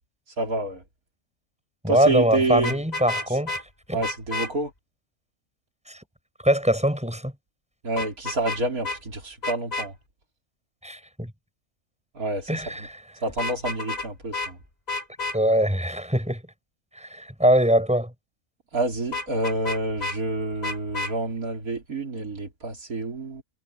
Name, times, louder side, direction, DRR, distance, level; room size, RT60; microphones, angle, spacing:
voice 1, 0.4-0.8 1.9-2.7 3.9-4.7 7.8-9.9 12.2-12.6 13.2-14.6 18.7-23.4, right 2 dB, 80° right, 4.0 m, -28 dB
voice 2, 1.8-3.6 3.9-4.0 5.9-6.0 6.4-7.3 10.8-11.3 12.5-13.0 15.3-16.4 17.0-18.1, equal, 5° right, 7.2 m, -22 dB
Vehicle horn car horn honking, 2.6-3.6 4.0-4.5 8.0-8.6 8.8-9.0 9.4-9.9 13.3-14.1 14.3-14.5 14.9-15.4 19.1-20.2 20.6-21.1, left 3 dB, 30° left, 3.5 m, -30 dB
omnidirectional pair, 1.5 m